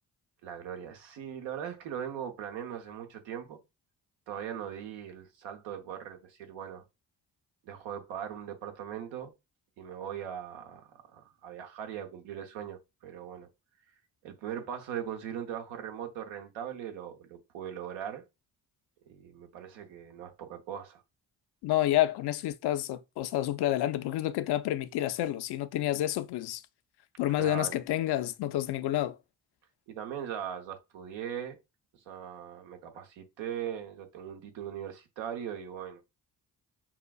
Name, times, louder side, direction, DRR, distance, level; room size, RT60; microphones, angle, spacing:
voice 1, 0.4-3.6 4.3-6.9 7.6-9.3 9.8-13.5 14.2-18.2 19.1-21.0 27.4-27.8 29.9-31.6 32.1-36.0, right 9 dB, 75° right, 0.8 m, -40 dB
voice 2, 21.6-26.6 27.2-29.2, left 13 dB, 60° left, 0.5 m, -29 dB
5.5 x 2.4 x 2.3 m
hypercardioid pair, 40°, 45 cm